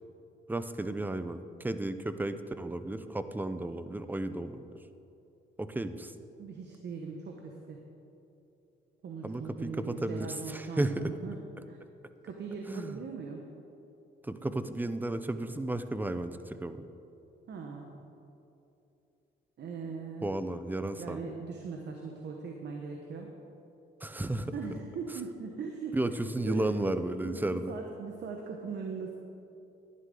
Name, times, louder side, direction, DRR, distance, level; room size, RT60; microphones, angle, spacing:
voice 1, 0.5-4.6 5.6-6.1 9.2-11.1 12.7-13.0 14.2-16.8 20.2-21.2 24.0-24.6 25.9-27.7, right 1 dB, 10° right, 11 dB, 0.5 m, -33 dB
voice 2, 6.4-7.8 9.0-11.4 11.7-11.8 12.2-13.4 17.5-18.0 19.6-20.3 20.9-23.3 24.5-26.0 26.4-26.7 27.2-29.2, right 5 dB, 60° right, 2 dB, 1.1 m, -40 dB
11.5 x 11.0 x 3.8 m, 2.8 s
cardioid pair, 90°, 20 cm